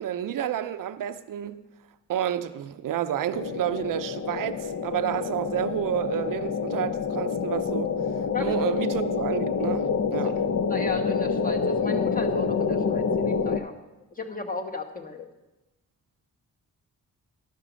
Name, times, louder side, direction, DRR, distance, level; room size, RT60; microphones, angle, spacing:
voice 1, 0.0-1.6 2.1-7.9 8.4-10.5, right 11 dB, 70° right, 11 dB, 0.5 m, -30 dB
sound 1, 3.3-13.6, left 5 dB, 50° left, 0.6 m, -27 dB
voice 2, 10.7-13.7 14.2-15.3, left 4 dB, 25° left, 3 dB, 1.2 m, -34 dB
11.0 x 6.0 x 6.2 m, 1.0 s
cardioid pair, 90°, 34 cm